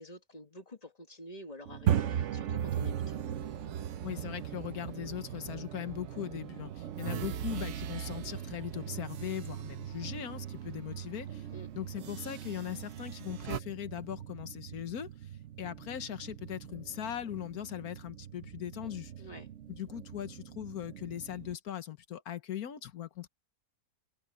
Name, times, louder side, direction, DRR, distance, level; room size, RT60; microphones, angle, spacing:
voice 1, 0.0-3.2 11.5-11.7 19.2-19.5, equal, 25° left, 2.1 m, -48 dB
sound 1, 1.7-21.6, right 10 dB, 60° right, 0.9 m, -39 dB
sound 2, 2.5-5.9 6.3-10.6 11.0-11.2 12.0-13.6, right 9 dB, 90° right, 1.4 m, -42 dB
voice 2, 4.0-11.5 11.7-15.1 15.6-19.1 19.7-23.3, left 11 dB, 75° left, 1.5 m, -39 dB
omnidirectional pair, 1.6 m